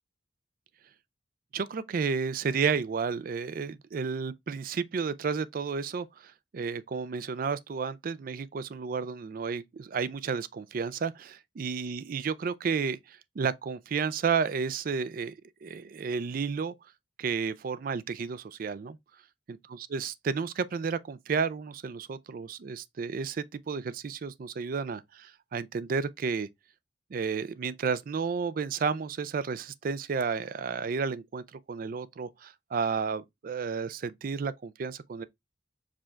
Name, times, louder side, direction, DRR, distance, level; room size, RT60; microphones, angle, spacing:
voice 1, 1.5-16.7 17.2-19.0 19.5-19.6 19.9-26.5 27.1-35.2, right 5 dB, 50° right, 0.4 m, -32 dB
4.9 x 2.4 x 4.4 m
head